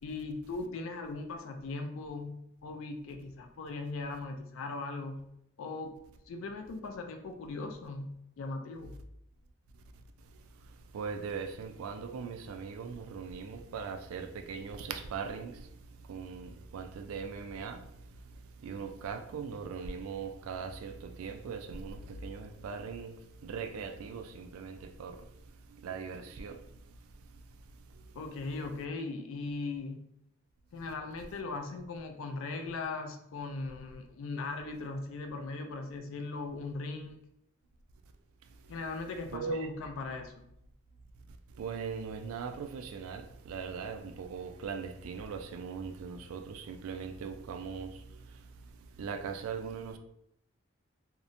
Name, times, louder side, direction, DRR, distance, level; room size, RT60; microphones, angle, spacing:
voice 1, 0.0-5.2 5.6-5.9 6.3-8.1 8.4-8.9 28.1-30.0 30.7-37.2 38.7-40.5, left 3 dB, 70° left, 0.3 m, -39 dB
voice 2, 10.9-15.7 16.1-17.8 18.6-23.2 23.4-25.2 25.8-26.6 39.3-39.7 41.6-48.0 49.0-50.0, right 5 dB, 85° right, 0.3 m, -40 dB
2.8 x 2.1 x 2.5 m
head